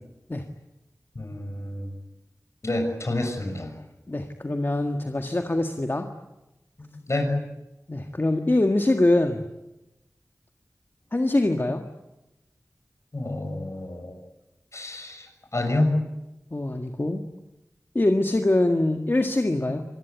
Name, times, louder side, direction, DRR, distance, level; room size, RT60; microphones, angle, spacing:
voice 1, 1.1-1.9 2.6-3.7 6.8-7.3 13.1-14.1 14.7-15.9, left 2 dB, 55° left, 6 dB, 6.6 m, -28 dB
voice 2, 4.1-6.1 7.9-9.4 11.1-11.8 16.5-17.2 18.0-19.8, left 2 dB, 40° left, 5 dB, 1.8 m, -23 dB
26.5 x 20.0 x 9.4 m, 0.97 s
wide cardioid pair, 55°, 6 cm